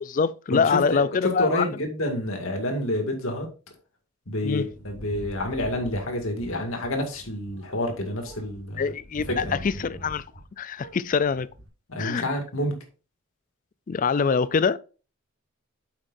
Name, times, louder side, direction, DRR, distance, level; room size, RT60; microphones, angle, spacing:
voice 1, 0.0-1.7 4.4-4.6 8.8-10.2 10.6-11.5 12.0-12.2 13.9-14.8, left 5 dB, 35° left, 0.3 m, -24 dB
voice 2, 0.5-3.5 4.3-8.8 9.3-9.6 11.9-12.8, left 1 dB, 70° left, 2.1 m, -28 dB
sound 1, 4.6-10.5 10.8-11.7, right 1 dB, 85° right, 2.6 m, -43 dB
9.2 x 7.3 x 2.6 m
head